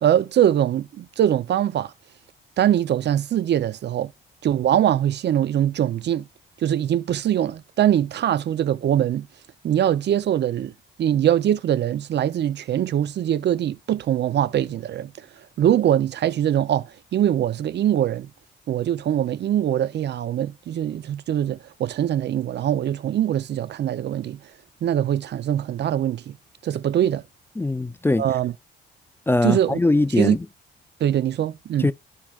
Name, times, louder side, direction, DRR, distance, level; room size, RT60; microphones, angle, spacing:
voice 1, 0.0-1.9 2.6-4.1 4.4-6.3 6.6-9.3 9.6-10.7 11.0-15.3 15.6-18.3 18.7-24.5 24.8-26.4 26.6-27.2 28.2-28.5 29.4-29.8 30.2-30.4 31.0-31.9, right 11 dB, 60° right, 0.7 m, -22 dB
voice 2, 27.6-28.2 29.3-30.5 31.8-31.9, left 2 dB, 10° left, 0.5 m, -21 dB
14.5 x 4.9 x 2.5 m
cardioid pair, 90°, 20 cm